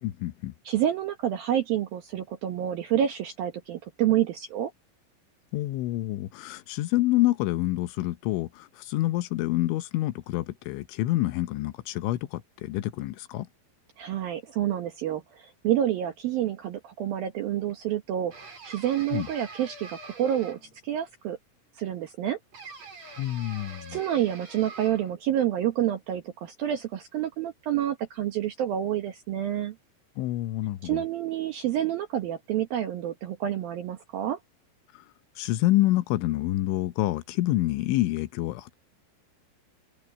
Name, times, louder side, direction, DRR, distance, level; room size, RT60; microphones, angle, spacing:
voice 1, 0.0-0.5 5.5-13.5 19.1-19.3 23.2-24.0 30.2-31.0 34.9-35.0 35.4-38.7, left 16 dB, 80° left, 3.1 m, -27 dB
voice 2, 0.6-4.7 14.0-18.3 18.6-21.4 21.8-22.4 23.9-29.8 30.8-34.4, right 11 dB, 70° right, 2.3 m, -28 dB
sound 1, 18.3-20.9 22.5-25.2, right 4 dB, 35° right, 5.4 m, -45 dB
omnidirectional pair, 5.7 m